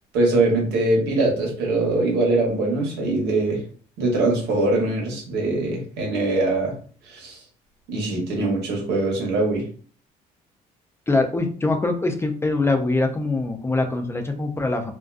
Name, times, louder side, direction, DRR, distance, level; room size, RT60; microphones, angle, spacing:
voice 1, 0.1-3.6 4.0-6.7 7.1-7.4 7.9-9.6, right 2 dB, 85° right, -1 dB, 1.0 m, -22 dB
voice 2, 11.1-14.9, left 2 dB, 15° left, 4 dB, 0.3 m, -23 dB
2.4 x 2.2 x 2.4 m, 0.43 s
cardioid pair, 110°, 17 cm